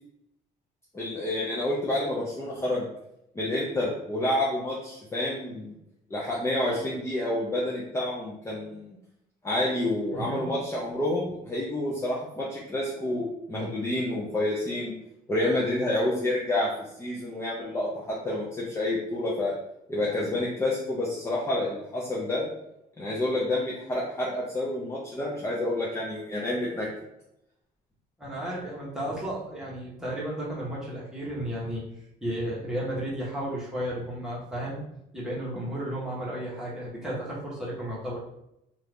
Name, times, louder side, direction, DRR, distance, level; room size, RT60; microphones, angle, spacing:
voice 1, 0.9-2.9 3.3-5.8 6.1-8.9 9.4-14.9 15.3-16.7 17.0-19.5 19.9-22.5 23.0-26.9, left 1 dB, 15° left, -5 dB, 0.6 m, -29 dB
voice 2, 10.1-10.5 28.2-31.8 32.2-34.8 35.1-38.2, right 1 dB, 5° right, -7 dB, 1.2 m, -33 dB
2.8 x 2.5 x 3.4 m, 0.82 s
cardioid pair, 110°, 17 cm